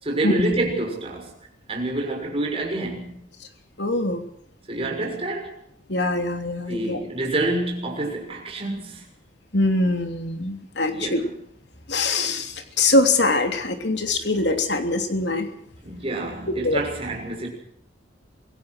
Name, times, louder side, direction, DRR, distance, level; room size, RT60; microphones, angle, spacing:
voice 1, 0.0-1.3 1.7-3.2 4.7-5.5 6.7-9.0 10.9-11.4 15.8-17.5, right 2 dB, 30° right, 6.3 m, -27 dB
voice 2, 3.8-4.2 5.9-7.0 9.5-11.2 11.9-15.5 16.6-16.8, left 2 dB, 65° left, 3.2 m, -23 dB
25.0 x 17.0 x 6.4 m
head